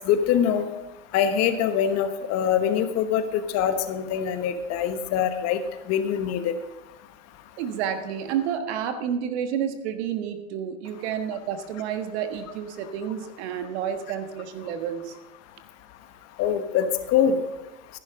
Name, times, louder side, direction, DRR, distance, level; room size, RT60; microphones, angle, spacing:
voice 1, 0.0-0.6 1.1-5.6 5.9-6.5 16.4-17.4, left 8 dB, 40° left, 8 dB, 1.2 m, -24 dB
voice 2, 7.6-15.1, right 8 dB, 60° right, 8 dB, 1.5 m, -30 dB
15.0 x 10.5 x 3.7 m, 1.0 s
hypercardioid pair, 115°, 38 cm